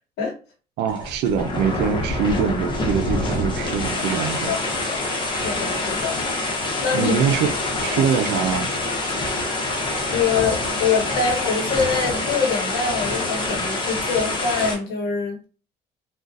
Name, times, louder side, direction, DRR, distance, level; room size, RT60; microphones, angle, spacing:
voice 1, 0.8-4.5 6.9-7.5 7.8-8.7, right 7 dB, 85° right, 0.5 m, -23 dB
sound 1, 0.9-14.7, left 2 dB, 30° left, 1.0 m, -26 dB
voice 2, 5.3-6.2 6.8-7.2 7.9-8.0 10.1-15.4, left 5 dB, 80° left, 1.1 m, -24 dB
3.7 x 2.4 x 2.5 m
cardioid pair, 110°, 17 cm